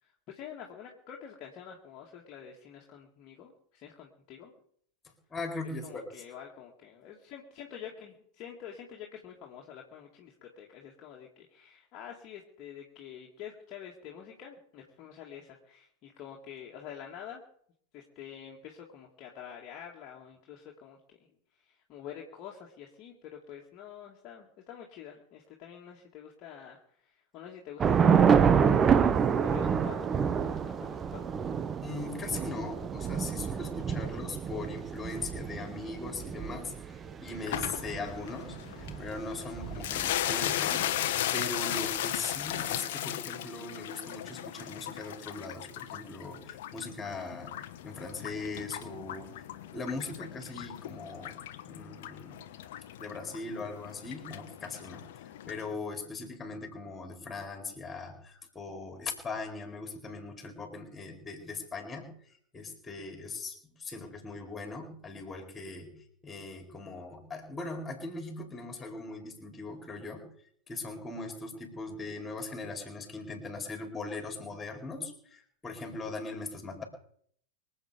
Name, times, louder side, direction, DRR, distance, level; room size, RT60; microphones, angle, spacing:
voice 1, 0.0-4.5 5.8-17.4 17.9-21.2 21.5-28.6 28.9-31.3, left 8 dB, 35° left, -1 dB, 2.2 m, -47 dB
voice 2, 5.3-6.1 31.8-41.1 41.3-47.5 47.8-49.4 49.7-51.4 51.6-52.4 53.0-55.0 55.5-62.1 62.5-65.9 66.2-70.3 70.7-76.8, left 3 dB, 15° left, 3 dB, 4.6 m, -40 dB
Thunder / Rain, 27.8-40.3, right 7 dB, 20° right, 0.8 m, -28 dB
sound 1, 37.5-55.7, left 12 dB, 55° left, 1.1 m, -37 dB
24.5 x 8.3 x 5.2 m, 0.63 s
figure-of-eight pair, 90°, 0 cm